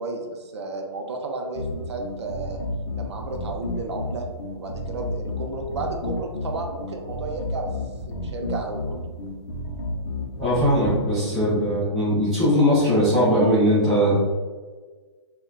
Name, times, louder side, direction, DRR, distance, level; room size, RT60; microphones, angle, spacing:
voice 1, 0.0-2.6 3.0-4.3 4.5-7.7 8.1-9.0, right 2 dB, 65° right, 3 dB, 0.5 m, -32 dB
sound 1, 1.5-11.0, left 1 dB, 60° left, 0.6 m, -31 dB
voice 2, 10.4-14.2, equal, ahead, -16 dB, 0.3 m, -20 dB
3.6 x 2.2 x 2.2 m, 1.4 s
hypercardioid pair, 175°, 15 cm